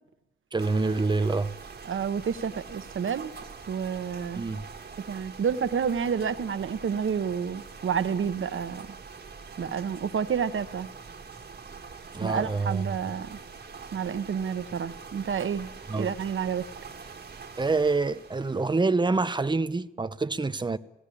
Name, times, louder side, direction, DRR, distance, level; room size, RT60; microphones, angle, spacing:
voice 1, 0.5-1.6 4.3-4.6 12.1-12.9 15.9-16.1 17.6-20.8, right 3 dB, 20° right, 0.7 m, -26 dB
sound 1, 0.6-18.9, right 5 dB, 50° right, 1.9 m, -44 dB
voice 2, 1.8-3.3 3.7-4.4 5.1-8.9 9.6-10.9 12.2-13.4 13.9-15.7 16.0-16.6, right 7 dB, 80° right, 1.0 m, -29 dB
17.5 x 16.5 x 9.9 m
wide cardioid pair, 145°, 20 cm